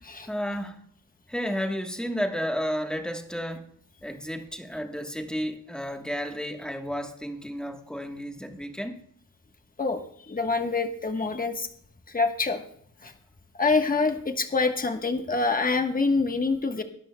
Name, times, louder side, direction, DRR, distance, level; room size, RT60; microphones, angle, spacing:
voice 1, 0.3-0.8 1.3-3.7 4.0-9.0, equal, ahead, 1.2 m, -32 dB
voice 2, 9.8-11.7 12.1-12.6 13.0-13.1 13.5-16.8, left 3 dB, 25° left, 1.2 m, -26 dB
21.5 x 12.5 x 2.2 m
wide cardioid pair, 160°, 33 cm